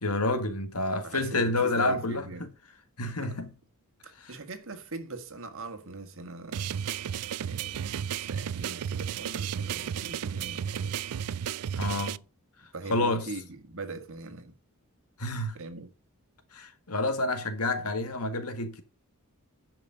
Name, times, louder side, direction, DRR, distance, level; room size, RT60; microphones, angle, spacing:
voice 1, 0.0-2.5 3.0-3.5 4.2-4.4 11.8-12.2 12.9-13.3 15.2-15.6 16.5-18.8, left 2 dB, 90° left, 1.8 m, -29 dB
voice 2, 1.0-2.5 3.1-3.4 4.0-6.8 7.4-7.9 8.2-11.0 12.7-14.5 15.5-15.9, right 3 dB, 65° right, 1.8 m, -41 dB
sound 1, 6.5-12.2, right 8 dB, 90° right, 0.4 m, -33 dB
11.0 x 5.4 x 6.4 m
head